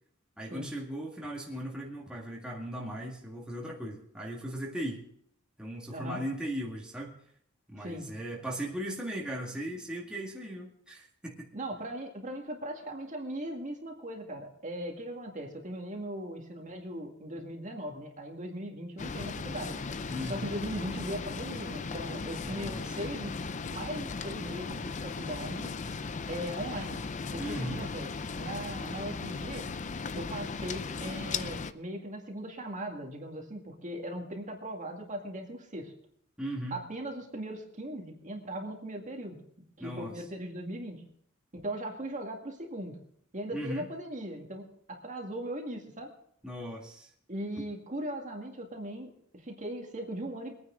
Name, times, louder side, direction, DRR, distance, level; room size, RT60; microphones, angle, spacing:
voice 1, 0.4-5.0 5.6-7.2 7.7-11.5 20.1-20.5 22.4-23.0 27.4-27.8 36.4-36.8 39.8-40.1 43.5-43.9 46.4-47.1 47.6-47.7, equal, 5° right, -2 dB, 1.9 m, -38 dB
voice 2, 5.9-6.2 7.8-8.1 11.5-19.8 20.2-23.3 23.7-25.7 26.3-27.0 27.3-28.1 28.4-29.7 30.1-35.9 36.7-39.4 39.8-41.0 41.5-43.0 43.3-46.1 47.3-50.6, right 1 dB, 35° right, 1 dB, 2.0 m, -39 dB
sound 1, 19.0-31.7, left 4 dB, 35° left, 0.5 m, -37 dB
23.5 x 9.5 x 3.8 m, 0.67 s
head